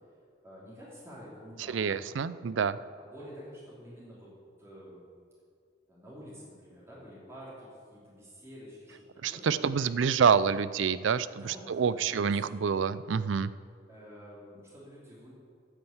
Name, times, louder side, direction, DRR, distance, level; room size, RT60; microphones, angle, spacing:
voice 1, 0.4-1.9 3.0-4.3 4.6-5.0 5.9-9.9 11.4-12.4 13.9-15.3, equal, 15° right, -8 dB, 3.1 m, -49 dB
voice 2, 1.7-2.8 9.2-13.5, right 6 dB, 85° right, 16 dB, 0.4 m, -27 dB
9.0 x 8.8 x 8.0 m, 2.3 s
head